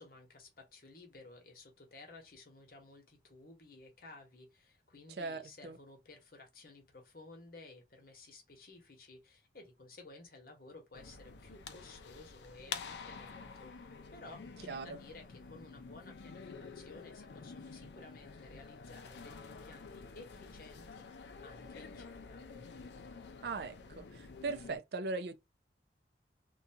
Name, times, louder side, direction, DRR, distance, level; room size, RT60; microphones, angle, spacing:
voice 1, 0.0-21.1 21.4-22.4, left 3 dB, 55° left, 1.0 m, -55 dB
voice 2, 5.2-5.8 14.7-15.0 23.4-25.4, right 3 dB, 60° right, 0.4 m, -39 dB
sound 1, 10.9-24.8, left 5 dB, 75° left, 0.4 m, -49 dB
2.6 x 2.3 x 2.7 m
head